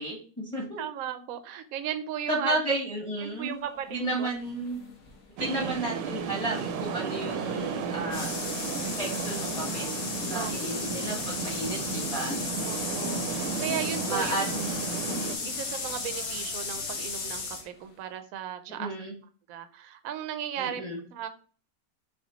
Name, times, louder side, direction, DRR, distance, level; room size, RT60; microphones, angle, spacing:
voice 1, 0.0-0.8 2.3-3.5 3.9-4.8 5.4-8.3 9.0-12.4 14.1-14.9 15.4-15.5 18.8-19.1 20.6-21.0, right 2 dB, 5° left, -2 dB, 0.7 m, -33 dB
voice 2, 0.8-2.6 3.2-4.3 5.4-5.7 10.3-10.8 12.6-14.4 15.4-18.9 19.5-20.8 21.1-21.3, right 10 dB, 65° right, 9 dB, 0.9 m, -36 dB
sound 1, 3.3-18.0, left 4 dB, 50° left, 1.2 m, -46 dB
sound 2, 5.4-15.4, right 5 dB, 85° right, 1.3 m, -34 dB
sound 3, 8.1-17.6, left 4 dB, 65° left, 1.4 m, -35 dB
5.5 x 2.4 x 3.9 m, 0.40 s
omnidirectional pair, 1.9 m